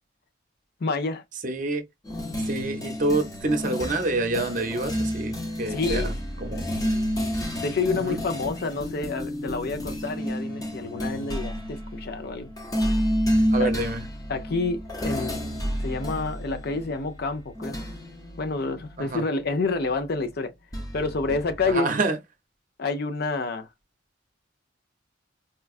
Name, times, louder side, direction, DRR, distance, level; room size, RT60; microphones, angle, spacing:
voice 1, 0.8-1.2 5.7-6.1 7.6-12.5 12.8-12.9 13.6-13.7 14.3-15.5 15.8-17.8 18.4-20.5 20.9-21.9 22.8-23.7, left 3 dB, 50° left, 0.5 m, -28 dB
voice 2, 1.4-1.8 2.5-6.1 6.4-6.7 7.9-8.2 13.5-14.0 19.0-19.2 21.6-22.2, right 2 dB, 40° right, 0.7 m, -27 dB
sound 1, 2.1-19.9 20.7-21.7, equal, 20° left, 0.7 m, -30 dB
4.3 x 2.3 x 2.4 m
head